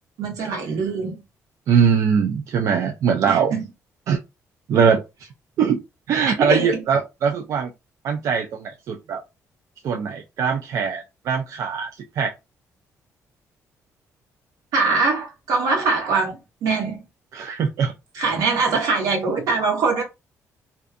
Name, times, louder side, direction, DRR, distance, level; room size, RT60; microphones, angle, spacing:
voice 1, 0.2-1.2 3.3-3.6 6.3-6.8 14.7-17.0 18.1-20.0, right 4 dB, 85° right, 1.1 m, -22 dB
voice 2, 1.7-3.6 4.1-4.2 4.7-5.0 5.6-5.8 6.1-7.7 8.0-9.2 9.8-11.9 12.2-12.3 17.3-17.9, right 6 dB, 65° right, 0.3 m, -21 dB
2.5 x 2.2 x 2.4 m
cardioid pair, 125°, 6 cm